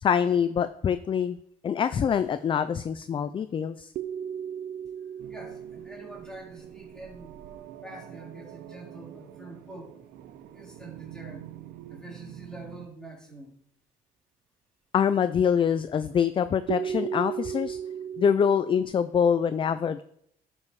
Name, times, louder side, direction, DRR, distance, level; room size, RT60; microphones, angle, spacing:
voice 1, 0.0-1.4 1.6-3.9 14.9-17.8 18.2-20.0, left 7 dB, 30° left, 12 dB, 0.4 m, -25 dB
sound 1, 4.0-8.1 16.7-18.8, right 8 dB, 55° right, 0.7 m, -36 dB
sound 2, 5.2-12.9, right 11 dB, 75° right, 0.9 m, -46 dB
voice 2, 5.3-7.3 7.8-10.0 10.5-11.5 11.9-13.6, right 2 dB, 5° left, -3 dB, 3.4 m, -45 dB
11.5 x 5.4 x 4.8 m, 0.71 s
cardioid pair, 110°, 17 cm